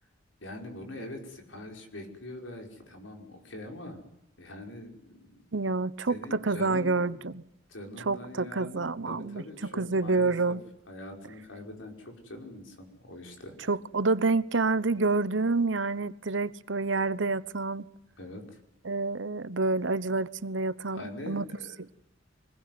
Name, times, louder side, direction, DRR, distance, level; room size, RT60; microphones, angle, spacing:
voice 1, 0.4-4.1 4.4-5.4 6.1-7.1 7.7-10.6 10.9-13.7 18.2-18.6 20.9-21.9, left 1 dB, 90° left, 3 dB, 5.5 m, -43 dB
voice 2, 5.5-7.4 8.1-9.4 9.8-10.6 13.7-17.8 18.8-21.4 21.8-21.9, right 3 dB, 75° right, 16 dB, 1.0 m, -28 dB
25.0 x 20.5 x 9.6 m, 0.82 s
head